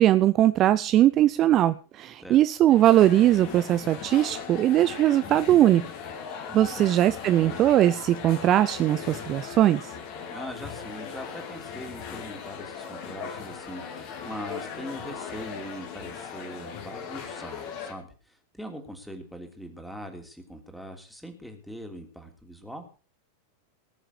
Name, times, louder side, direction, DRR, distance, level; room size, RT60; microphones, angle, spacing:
voice 1, 0.0-5.8 6.5-9.8, right 13 dB, 35° right, 14 dB, 0.6 m, -20 dB
sound 1, 2.7-17.9, left 6 dB, 45° left, 3.3 m, -38 dB
voice 2, 6.5-6.9 10.2-22.8, equal, ahead, 4 dB, 3.1 m, -41 dB
19.0 x 7.1 x 6.6 m, 0.37 s
figure-of-eight pair, 90°, 0 cm